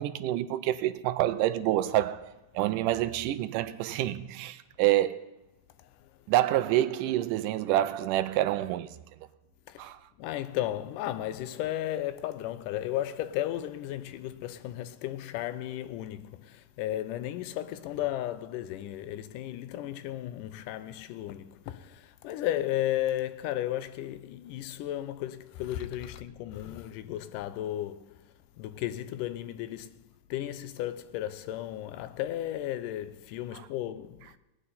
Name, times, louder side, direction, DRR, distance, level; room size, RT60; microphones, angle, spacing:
voice 1, 0.0-5.2 6.3-9.0 9.8-10.0 33.5-33.7, right 14 dB, 80° right, 2.1 m, -27 dB
voice 2, 10.2-28.1 28.6-30.0 30.3-34.3, left 13 dB, 80° left, 2.2 m, -34 dB
19.5 x 9.9 x 4.2 m
omnidirectional pair, 3.9 m